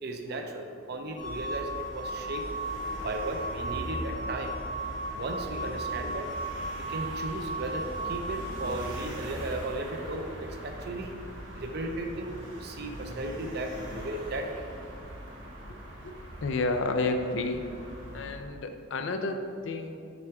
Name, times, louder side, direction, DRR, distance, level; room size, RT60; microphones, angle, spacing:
voice 1, 0.0-2.4 3.0-4.5 5.1-6.3 6.9-11.2 11.5-14.6, right 2 dB, 50° right, 4 dB, 0.5 m, -35 dB
sound 1, 1.2-8.7, right 2 dB, 20° left, 0.8 m, -36 dB
sound 2, 1.2-18.4, right 1 dB, 65° right, 0.9 m, -41 dB
voice 2, 16.4-17.7 18.1-20.0, left 3 dB, 65° left, 6 dB, 0.4 m, -30 dB
6.0 x 3.4 x 4.7 m, 2.4 s
head